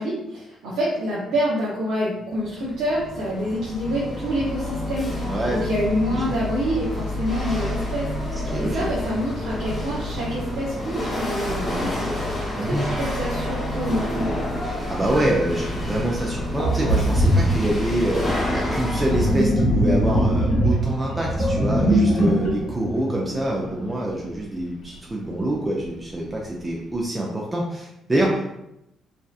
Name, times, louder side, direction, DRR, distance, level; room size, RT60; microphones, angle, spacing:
voice 1, 0.0-14.5, equal, 85° right, -8 dB, 0.6 m, -27 dB
Chatter / Hiss / Rattle, 2.5-19.4, left 1 dB, 30° left, 1.1 m, -28 dB
voice 2, 5.2-5.6 6.1-6.3 8.5-8.9 12.6-12.9 14.9-28.6, right 1 dB, 20° right, -2 dB, 0.4 m, -26 dB
Sink (filling or washing), 15.9-16.0 16.6-23.9, equal, 65° left, 0.8 m, -22 dB
2.7 x 2.2 x 2.3 m, 0.85 s
cardioid pair, 90°, 0 cm